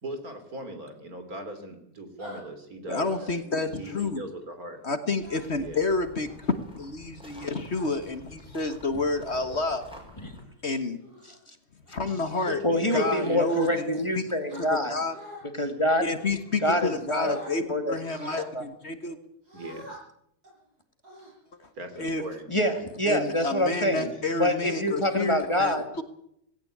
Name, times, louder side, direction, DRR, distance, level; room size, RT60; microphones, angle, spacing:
voice 1, 0.0-3.1 3.8-4.8 5.6-5.8 12.5-13.6 19.5-19.9 21.8-22.5, right 1 dB, 70° right, 7 dB, 3.7 m, -39 dB
sound 1, 2.2-2.4 3.0-3.3 3.8-4.1 5.2-5.7 6.3-6.6 7.3-7.9 8.7-8.9 9.4-9.8 10.3-10.5 11.0-11.3 11.9-12.1 13.4-14.1 14.5-15.4 16.1-16.8 17.1-17.5 18.0-18.4 19.5-20.0 20.4-20.6 21.0-21.7, equal, 90° right, 8.8 m, -46 dB
voice 2, 2.9-4.2 4.8-9.8 10.6-11.0 11.9-12.6 12.9-14.3 14.6-15.2 16.0-19.2 21.6-21.7 22.0-22.2 23.1-26.0, left 3 dB, 45° left, 9 dB, 1.7 m, -30 dB
sound 2, 5.2-10.4, left 1 dB, 5° right, 5.0 m, -49 dB
voice 3, 12.6-14.9 15.6-16.0 16.6-17.9 18.4-18.6 22.5-24.1 24.4-25.8, left 1 dB, 20° left, 6 dB, 2.3 m, -26 dB
18.5 x 17.5 x 8.5 m, 0.73 s
omnidirectional pair, 1.6 m